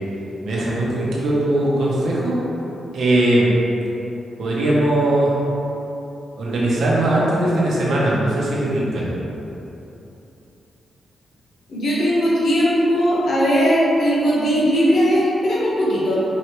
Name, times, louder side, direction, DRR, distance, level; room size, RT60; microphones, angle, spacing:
voice 1, 0.4-2.4 2.9-3.5 4.4-5.4 6.4-9.1, right 1 dB, 65° right, -6 dB, 0.9 m, -19 dB
voice 2, 11.7-16.2, equal, 60° left, -7 dB, 1.1 m, -18 dB
4.7 x 3.2 x 3.1 m, 3.0 s
wide cardioid pair, 160°, 0 cm